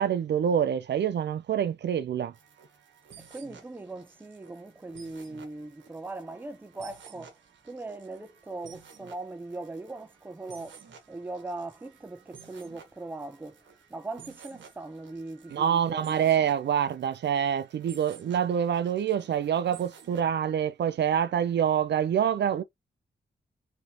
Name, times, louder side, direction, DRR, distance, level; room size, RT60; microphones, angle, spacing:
voice 1, 0.0-2.3 15.5-22.6, right 9 dB, 70° right, 0.4 m, -26 dB
sound 1, 2.3-20.2, right 6 dB, 90° right, 1.0 m, -53 dB
voice 2, 3.3-7.4 7.6-10.8 11.1-13.6 13.9-16.3, right 2 dB, 10° right, 0.5 m, -40 dB
3.2 x 3.0 x 2.6 m
cardioid pair, 75°, 19 cm